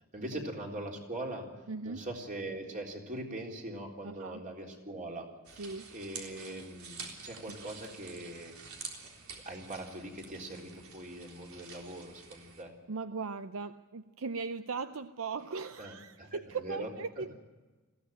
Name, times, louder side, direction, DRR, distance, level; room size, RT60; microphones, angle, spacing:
voice 1, 0.1-1.5 1.8-8.5 9.5-12.7 15.8-16.9 17.2-17.3, right 1 dB, 40° right, 0 dB, 3.9 m, -42 dB
voice 2, 1.7-2.1 4.0-4.4 5.6-5.9 7.5-7.6 12.9-17.3, right 4 dB, 70° right, 11 dB, 0.6 m, -39 dB
sound 1, 5.4-12.6, right 5 dB, 90° right, 3.7 m, -48 dB
21.0 x 15.5 x 8.9 m, 1.3 s
head